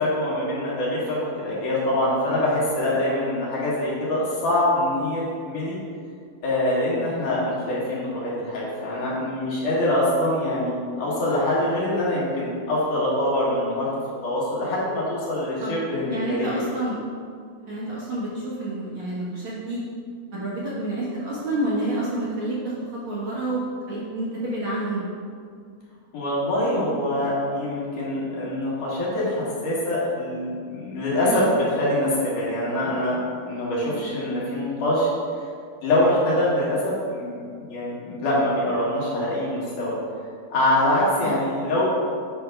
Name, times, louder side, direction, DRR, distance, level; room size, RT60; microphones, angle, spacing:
voice 1, 0.0-5.8 6.4-13.9 14.2-16.6 26.1-35.1 35.8-36.8 37.1-37.4 37.7-39.9 40.5-41.8, left 1 dB, 85° left, -7 dB, 3.4 m, -24 dB
voice 2, 16.1-17.0 17.7-19.8 20.3-25.0 31.2-31.4 33.9-34.0 41.2-41.4, right 1 dB, 55° right, -7 dB, 1.6 m, -29 dB
8.3 x 3.5 x 5.9 m, 2.2 s
omnidirectional pair, 3.5 m